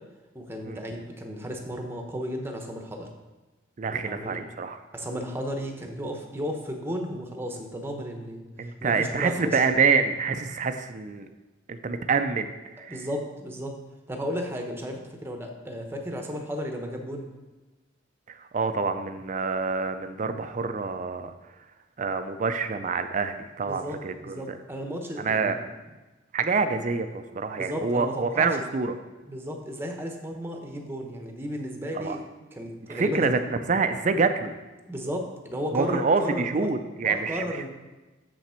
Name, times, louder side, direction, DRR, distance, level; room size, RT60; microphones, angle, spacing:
voice 1, 0.3-3.1 3.9-4.4 4.9-9.6 12.9-13.7 14.1-17.3 23.6-25.7 27.6-28.7 29.3-32.2 32.5-33.3 34.8-36.7 37.0-37.7, equal, 10° right, 2 dB, 0.8 m, -34 dB
voice 2, 3.8-4.8 8.6-11.3 11.7-13.0 18.3-21.3 22.0-24.6 25.2-25.6 26.3-29.0 31.9-32.2 32.9-34.6 35.7-37.6, right 4 dB, 40° right, 9 dB, 0.4 m, -26 dB
7.0 x 5.8 x 4.3 m, 1.1 s
head